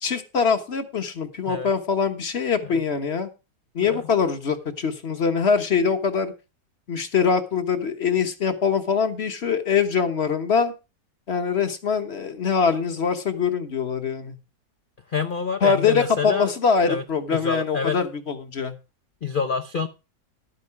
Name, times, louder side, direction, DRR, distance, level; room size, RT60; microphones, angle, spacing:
voice 1, 0.0-3.3 3.7-6.3 6.9-10.7 11.3-14.4 15.6-18.7, left 6 dB, 40° left, 1.4 m, -23 dB
voice 2, 15.1-16.5 16.9-17.0 17.3-18.0 19.2-19.9, left 5 dB, 75° left, 0.4 m, -27 dB
12.0 x 8.8 x 4.7 m
omnidirectional pair, 1.9 m